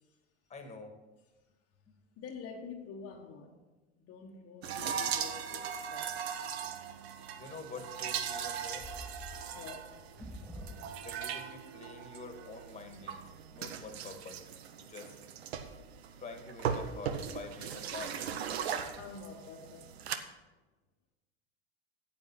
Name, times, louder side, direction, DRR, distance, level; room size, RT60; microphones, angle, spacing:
voice 1, 0.5-0.9 7.4-8.9 11.0-14.4 14.8-15.1 16.2-18.1, left 3 dB, 20° left, 1.9 m, -47 dB
voice 2, 2.2-3.6 4.0-6.2 9.5-9.9 19.0-20.0, left 5 dB, 50° left, 1.4 m, -47 dB
sound 1, 4.6-20.2, right 8 dB, 80° right, 1.0 m, -39 dB
sound 2, 8.1-11.5, equal, 5° left, 2.4 m, -48 dB
9.6 x 8.5 x 5.8 m
hypercardioid pair, 90°, 31 cm